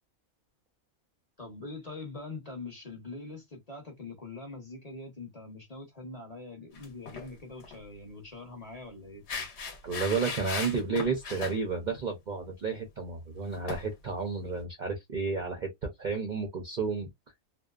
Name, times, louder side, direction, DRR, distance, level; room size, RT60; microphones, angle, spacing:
voice 1, 1.4-9.5, left 3 dB, 30° left, 0.9 m, -43 dB
sound 1, 6.7-7.3 7.6-7.8 9.3-11.6 13.7-13.8, left 5 dB, 60° left, 1.0 m, -37 dB
voice 2, 9.8-15.7 16.0-17.1, right 4 dB, 50° right, 0.6 m, -31 dB
2.7 x 2.1 x 2.3 m
omnidirectional pair, 1.5 m